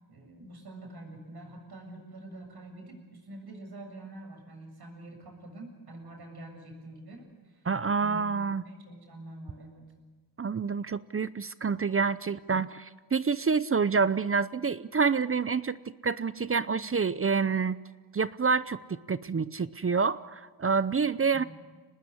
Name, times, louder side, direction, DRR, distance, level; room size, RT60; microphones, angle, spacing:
voice 1, 0.1-7.6 8.0-8.2 8.6-9.9 21.3-21.4, right 1 dB, 65° right, 3 dB, 7.4 m, -46 dB
voice 2, 7.6-8.6 10.4-17.8 18.1-18.8 19.1-21.4, right 5 dB, 35° right, 15 dB, 0.7 m, -27 dB
25.0 x 19.5 x 9.7 m, 1.4 s
cardioid pair, 85°, 41 cm